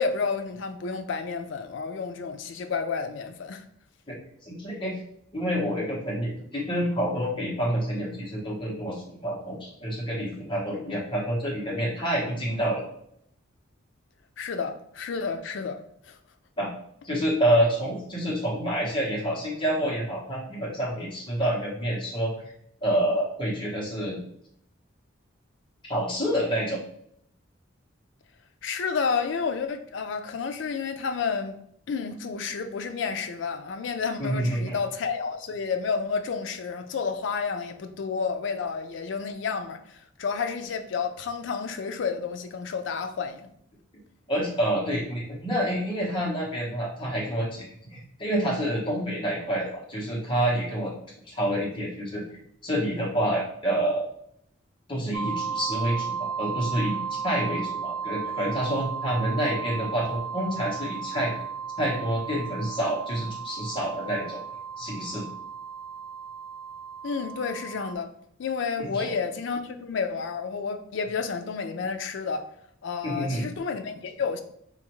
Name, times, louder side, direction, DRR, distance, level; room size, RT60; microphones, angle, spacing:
voice 1, 0.0-3.6 14.4-15.8 16.1-16.2 28.6-31.6 31.9-43.5 67.0-68.1 68.4-72.5 72.8-74.4, left 5 dB, 65° left, 0.4 m, -30 dB
voice 2, 4.4-5.0 5.3-12.8 16.6-16.7 17.0-22.5 22.8-24.2 25.8-26.8 34.2-34.7 44.3-47.6 47.9-50.9 51.3-52.2 52.6-54.1 54.9-61.3 61.8-64.4 64.8-65.2 68.9-69.1 73.0-73.4, right 1 dB, 25° left, 1.0 m, -28 dB
sound 1, 55.1-67.9, right 6 dB, 65° right, 0.7 m, -34 dB
4.1 x 2.5 x 3.0 m
head